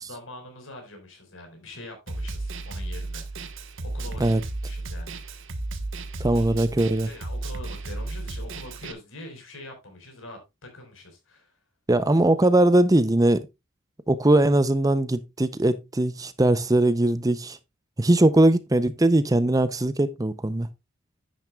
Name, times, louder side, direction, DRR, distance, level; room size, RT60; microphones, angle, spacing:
voice 1, 0.1-3.5 3.8-5.4 6.2-6.5 7.1-11.6, left 1 dB, 65° left, 4.8 m, -44 dB
Snare drum, 2.1-8.9, right 2 dB, 65° right, 1.3 m, -34 dB
voice 2, 6.2-7.1 11.9-13.5 14.1-17.6 18.0-20.7, right 1 dB, 15° right, 0.6 m, -20 dB
10.5 x 9.4 x 2.3 m
head